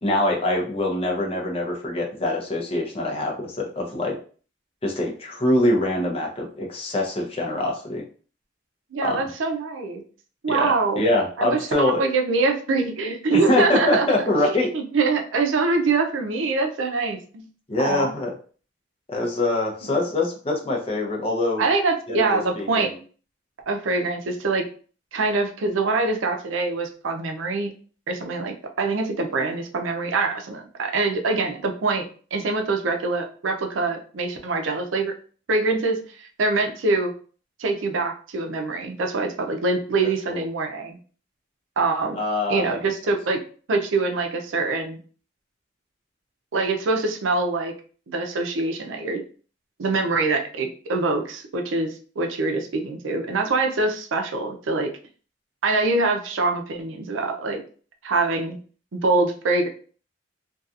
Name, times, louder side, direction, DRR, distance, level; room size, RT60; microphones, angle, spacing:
voice 1, 0.0-4.2 4.8-8.0 9.0-9.2 10.5-12.0 13.3-14.7 17.7-18.3 19.1-21.7 22.1-23.0 40.3-40.4 42.2-42.8, left 2 dB, 30° left, 0 dB, 0.6 m, -24 dB
voice 2, 8.9-10.0 10.4-11.1 11.4-14.1 14.4-17.5 17.8-18.1 19.8-20.0 21.6-22.9 23.7-24.6 25.1-27.7 28.1-32.0 32.3-35.1 35.5-37.1 37.6-41.0 41.8-42.2 42.5-43.4 43.7-45.0 46.5-47.7 48.1-49.2 49.8-54.9 55.6-57.6 58.0-58.6 58.9-59.7, right 3 dB, 85° right, 4 dB, 0.5 m, -24 dB
2.7 x 2.3 x 2.4 m, 0.41 s
head